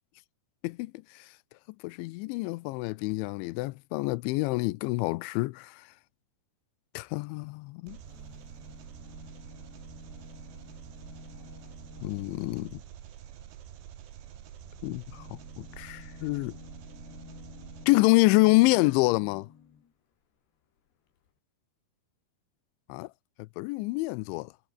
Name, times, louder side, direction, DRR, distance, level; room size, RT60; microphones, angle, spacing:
voice 1, 1.8-5.8 7.0-8.0 12.0-12.8 14.8-15.2 15.6-16.5 17.9-19.5 22.9-23.1 23.6-24.5, left 22 dB, 90° left, 3.0 m, -26 dB
sound 1, 7.9-12.8 14.5-19.9 20.9-21.0 21.2-21.3, left 8 dB, 65° left, 5.3 m, -52 dB
Engine, 7.9-17.9, right 10 dB, 70° right, 4.4 m, -47 dB
omnidirectional pair, 5.3 m